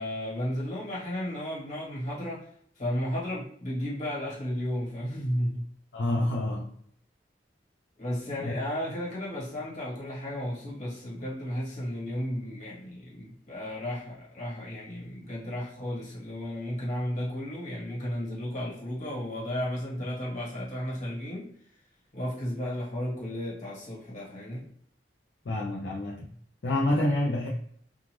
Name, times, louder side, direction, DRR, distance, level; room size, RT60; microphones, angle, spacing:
voice 1, 0.0-2.5 2.8-5.6 8.0-21.5 22.1-24.7, equal, 45° left, -6 dB, 1.5 m, -33 dB
voice 2, 5.9-6.7 8.4-8.5 25.4-26.3 26.6-27.5, left 1 dB, 65° left, -3 dB, 0.5 m, -27 dB
2.5 x 2.3 x 3.1 m, 0.63 s
head